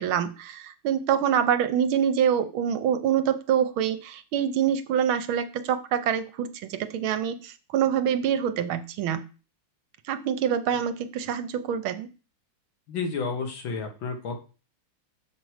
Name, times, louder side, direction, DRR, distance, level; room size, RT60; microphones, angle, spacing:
voice 1, 0.0-9.2 10.1-12.1, right 9 dB, 75° right, 11 dB, 1.5 m, -25 dB
voice 2, 12.9-14.4, left 4 dB, 70° left, 4 dB, 2.1 m, -31 dB
6.6 x 4.5 x 6.3 m, 0.34 s
omnidirectional pair, 2.3 m